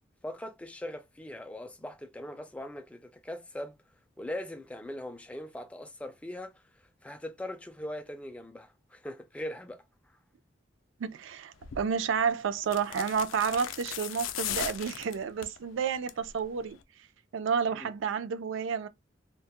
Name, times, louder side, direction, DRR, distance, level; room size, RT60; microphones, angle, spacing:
voice 1, 0.2-3.8 4.2-6.6 7.0-9.8 17.7-17.9, left 1 dB, 5° left, 0.3 m, -40 dB
voice 2, 11.0-16.8 17.3-18.9, right 6 dB, 80° right, 0.4 m, -30 dB
sound 1, 11.6-11.9 12.6-15.6 15.9-16.3 16.6-16.7, left 10 dB, 85° left, 0.4 m, -37 dB
2.2 x 2.1 x 2.8 m
head